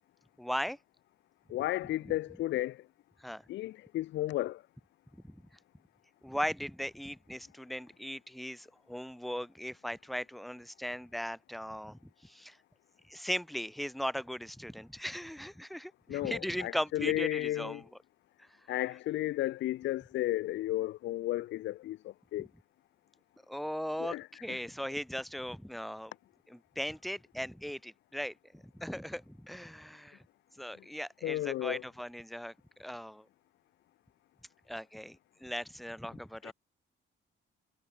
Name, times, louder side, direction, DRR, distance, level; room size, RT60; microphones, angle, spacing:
voice 1, 0.4-0.8 2.0-2.1 3.2-3.4 5.2-5.4 6.2-12.6 13.1-17.9 18.4-18.5 22.4-22.5 23.5-26.1 26.5-30.2 30.6-32.5 32.8-33.2 34.7-36.5, equal, ahead, 1.0 m, -38 dB
voice 2, 1.5-2.8 3.5-4.6 16.1-17.8 18.7-22.0 22.3-22.5 24.0-24.3 31.2-31.8 36.4-36.5, left 15 dB, 65° left, 0.4 m, -33 dB
cardioid pair, 90°, 20 cm